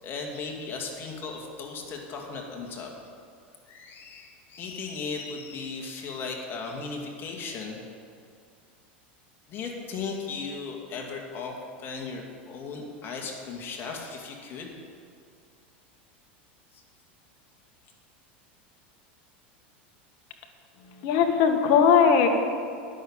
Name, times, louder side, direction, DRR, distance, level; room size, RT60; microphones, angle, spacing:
voice 1, 0.0-2.9 3.7-7.8 9.5-14.8, left 4 dB, 40° left, 1 dB, 2.3 m, -36 dB
voice 2, 21.0-22.3, left 7 dB, 60° left, 5 dB, 1.5 m, -19 dB
9.8 x 6.6 x 8.8 m, 2.3 s
hypercardioid pair, 100°, 6 cm